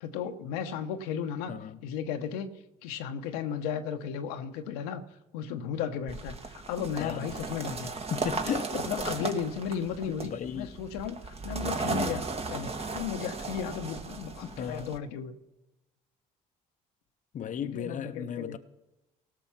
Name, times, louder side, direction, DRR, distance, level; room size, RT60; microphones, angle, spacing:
voice 1, 0.0-1.5 1.8-2.5 2.8-5.0 5.3-7.9 8.7-15.3 17.6-18.6, left 7 dB, 85° left, 0.9 m, -35 dB
voice 2, 1.5-1.8 7.0-7.3 8.1-8.9 10.2-10.7 14.4-14.9 17.3-18.6, left 8 dB, 45° left, 0.7 m, -35 dB
sound 1, 6.1-15.0, right 4 dB, 35° right, 1.3 m, -36 dB
17.5 x 6.3 x 5.8 m
hypercardioid pair, 65°, 18 cm